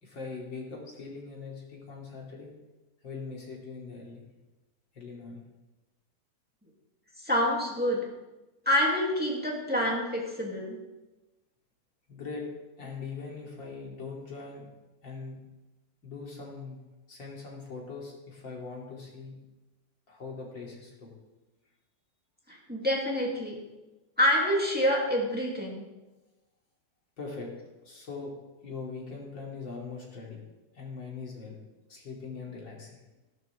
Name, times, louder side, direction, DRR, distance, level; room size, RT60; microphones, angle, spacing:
voice 1, 0.0-2.5 3.0-4.2 4.9-5.4 12.1-12.5 12.8-14.7 15.0-15.4 16.0-16.8 17.1-19.4 20.1-21.1 27.2-27.6 27.8-28.3 28.6-30.4 30.7-31.6 31.9-33.0, left 4 dB, 90° left, -2 dB, 3.6 m, -41 dB
voice 2, 7.2-8.0 8.7-10.8 22.5-23.6 24.2-25.8, equal, 5° right, -3 dB, 2.6 m, -27 dB
17.0 x 12.0 x 3.5 m, 1.1 s
omnidirectional pair, 2.0 m